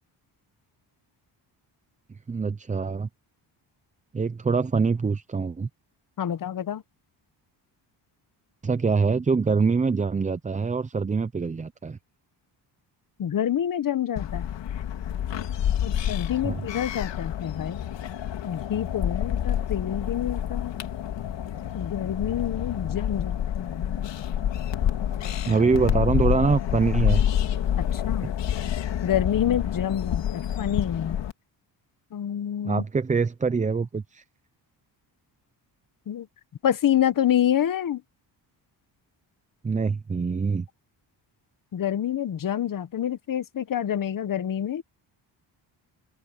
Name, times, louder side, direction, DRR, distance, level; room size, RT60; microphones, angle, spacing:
voice 1, 2.3-3.1 4.1-5.7 8.6-12.0 16.4-16.7 25.5-27.2 32.6-34.2 39.6-40.7, right 4 dB, 15° right, 0.5 m, -24 dB
voice 2, 6.2-6.8 13.2-14.5 15.8-17.8 18.4-20.7 21.8-24.1 27.8-28.3 29.0-31.2 32.1-32.8 36.1-36.3 36.6-38.0 41.7-44.8, left 10 dB, 45° left, 1.0 m, -27 dB
sound 1, 14.2-31.3, left 10 dB, 75° left, 2.5 m, -28 dB
open air
cardioid pair, 120°, 44 cm